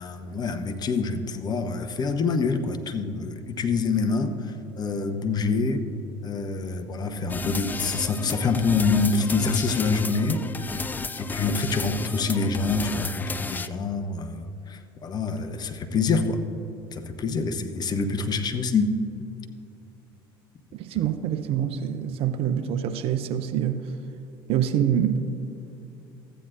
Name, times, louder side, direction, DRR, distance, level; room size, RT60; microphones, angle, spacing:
voice 1, 0.0-5.9 6.2-10.9 11.1-16.4 16.9-18.9, left 4 dB, 35° left, 0.8 m, -26 dB
sound 1, 7.3-13.7, left 4 dB, 15° left, 0.4 m, -33 dB
voice 2, 20.7-23.9 24.5-25.2, right 9 dB, 50° right, 0.6 m, -25 dB
14.5 x 9.1 x 2.5 m
hypercardioid pair, 65°, 12 cm